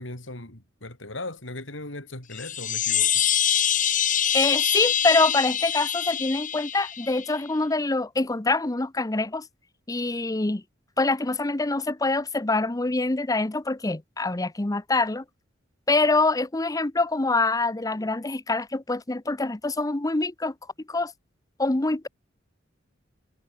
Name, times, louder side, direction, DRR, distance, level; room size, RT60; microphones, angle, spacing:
voice 1, 0.0-3.1, left 2 dB, 75° left, 5.8 m, -38 dB
sound 1, 2.3-7.4, left 9 dB, 45° left, 2.7 m, -25 dB
voice 2, 4.3-9.5 9.9-10.6 11.0-15.2 15.9-20.5 20.9-21.1 21.6-22.1, left 3 dB, 20° left, 0.7 m, -25 dB
head